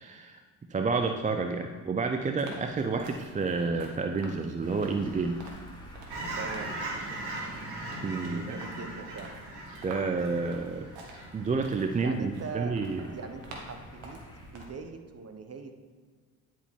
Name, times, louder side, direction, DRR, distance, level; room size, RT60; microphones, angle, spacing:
voice 1, 0.0-0.4 0.7-5.4 8.0-8.4 9.8-10.9 11.3-13.1, right 4 dB, 20° right, 5 dB, 0.4 m, -29 dB
sound 1, 2.4-14.6, right 2 dB, 80° right, 1.5 m, -50 dB
sound 2, 4.6-14.5, left 1 dB, 10° left, 1.5 m, -51 dB
Fowl / Chirp tweet, 6.1-11.9 12.3-12.6, right 2 dB, 65° right, 1.8 m, -39 dB
voice 2, 6.4-6.8 8.2-9.4 12.0-12.8 13.1-15.7, right 5 dB, 35° right, 7 dB, 0.9 m, -41 dB
9.7 x 5.0 x 3.6 m, 1.5 s
supercardioid pair, 75°, 44 cm